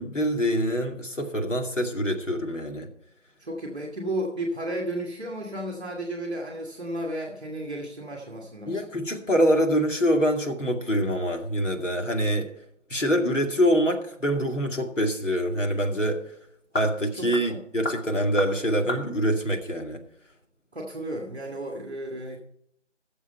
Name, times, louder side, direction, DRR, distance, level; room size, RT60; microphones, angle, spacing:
voice 1, 0.0-2.9 8.7-12.5 12.9-16.2 16.7-20.0, equal, 85° left, 3 dB, 2.5 m, -25 dB
voice 2, 3.4-8.8 17.2-17.6 20.7-22.4, right 1 dB, 5° right, -11 dB, 1.4 m, -33 dB
sound 1, 14.6-20.5, left 1 dB, 55° left, 3.5 m, -38 dB
16.0 x 7.2 x 4.3 m, 0.72 s
figure-of-eight pair, 170°, 36 cm